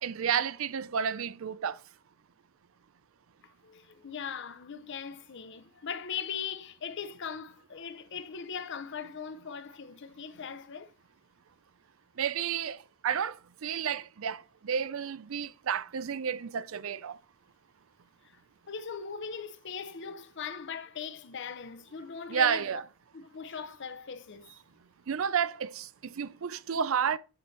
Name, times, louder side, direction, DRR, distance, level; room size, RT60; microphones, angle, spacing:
voice 1, 0.0-1.8 12.2-17.2 22.3-22.8 25.1-27.2, right 7 dB, 65° right, 0.5 m, -31 dB
voice 2, 3.6-10.9 18.7-22.8 23.1-24.5, left 6 dB, 55° left, 0.7 m, -40 dB
11.5 x 4.2 x 3.2 m
head